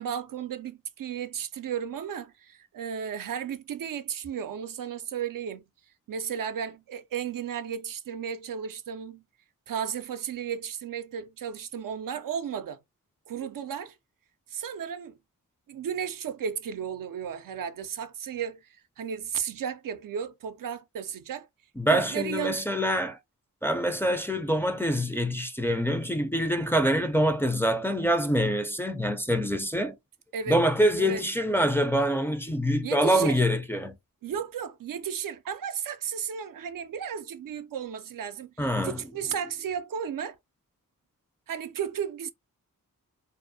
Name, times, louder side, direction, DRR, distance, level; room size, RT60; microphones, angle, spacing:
voice 1, 0.0-5.6 6.1-9.2 9.7-12.8 13.3-14.0 14.5-15.2 15.7-21.5 21.9-22.6 30.3-30.6 31.0-31.2 32.8-33.4 34.2-40.4 41.5-42.3, right 8 dB, 70° right, 0.5 m, -34 dB
voice 2, 21.8-23.2 23.6-30.0 30.5-34.0 38.6-39.0, equal, 5° left, 0.4 m, -25 dB
2.5 x 2.0 x 2.7 m
cardioid pair, 55°, 35 cm